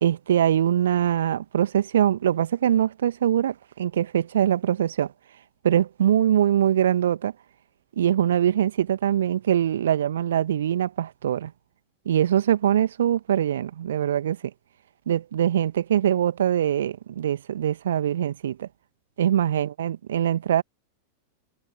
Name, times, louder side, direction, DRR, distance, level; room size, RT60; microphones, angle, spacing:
voice 1, 0.0-5.1 5.6-7.3 8.0-11.5 12.1-14.4 15.1-18.7 19.2-20.6, right 10 dB, 60° right, 1.7 m, -23 dB
figure-of-eight pair, 90°, 0 cm